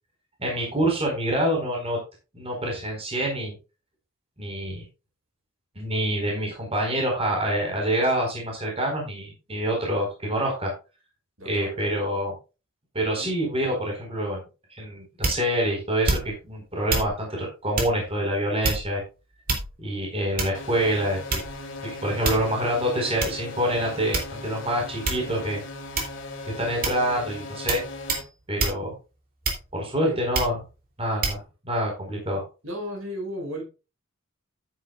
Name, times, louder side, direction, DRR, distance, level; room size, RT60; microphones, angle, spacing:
voice 1, 0.4-2.0 2.3-3.5 4.4-4.8 5.8-10.7 11.4-12.3 12.9-14.4 14.8-19.0 19.8-21.4 22.0-25.6 26.6-27.8 28.5-28.9 29.7-30.6 31.0-32.4, right 1 dB, 25° right, 0 dB, 4.4 m, -26 dB
voice 2, 11.4-11.8 13.2-13.3 30.0-30.2 32.6-33.6, equal, 70° right, 2 dB, 5.4 m, -34 dB
sound 1, 15.2-15.6 16.0-16.5 16.9-17.1 17.7-18.0 18.6-19.0 19.5-19.9 20.4-20.7 21.3-21.7 22.2-22.6 23.2-23.4 24.1-24.6 25.0-25.3 25.9-26.3 26.8-27.1 27.7-27.8 28.1-28.3 28.6-28.8 29.4-29.8 30.3-30.6 31.2-31.4, right 3 dB, 40° right, 2.9 m, -27 dB
sound 2, 20.5-28.2, left 2 dB, 55° left, 2.5 m, -38 dB
11.5 x 9.6 x 2.4 m, 0.29 s
head